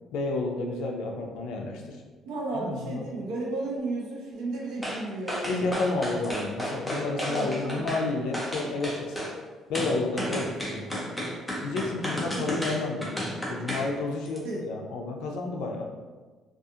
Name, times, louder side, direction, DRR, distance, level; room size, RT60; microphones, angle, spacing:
voice 1, 0.1-2.0 2.5-3.1 5.5-9.2 9.7-11.1 11.6-15.9, left 3 dB, 80° left, 1 dB, 0.4 m, -31 dB
voice 2, 2.2-5.7 7.3-8.0 12.3-12.6 14.4-14.7, right 2 dB, 85° right, -3 dB, 0.6 m, -33 dB
sound 1, 4.8-5.0 5.3-8.0 8.3-9.3 9.7-13.9 14.2-14.4, equal, 5° left, 0.4 m, -32 dB
2.4 x 2.4 x 2.7 m, 1.3 s
cardioid pair, 175°, 0 cm